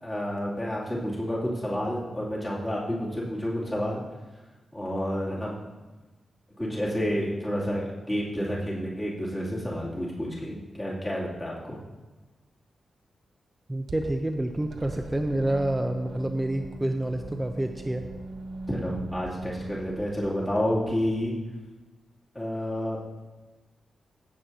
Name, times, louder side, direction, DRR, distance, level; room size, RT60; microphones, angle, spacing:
voice 1, 0.0-4.0 4.7-5.7 6.6-11.8 18.7-21.3 22.3-23.0, equal, 20° left, -6 dB, 2.7 m, -30 dB
voice 2, 13.7-18.0, right 1 dB, 10° right, 4 dB, 0.6 m, -28 dB
sound 1, 13.9-21.2, right 2 dB, 85° right, 1.3 m, -40 dB
16.5 x 7.5 x 2.8 m, 1.2 s
wide cardioid pair, 105°, 0 cm